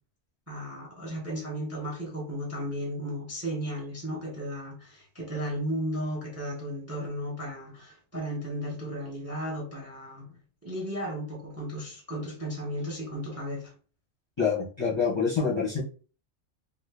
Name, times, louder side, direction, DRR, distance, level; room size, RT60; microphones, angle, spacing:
voice 1, 0.5-13.7, equal, 15° right, -1 dB, 0.6 m, -35 dB
voice 2, 14.4-15.8, left 5 dB, 30° left, -4 dB, 0.7 m, -26 dB
2.8 x 2.3 x 3.4 m, 0.38 s
omnidirectional pair, 1.3 m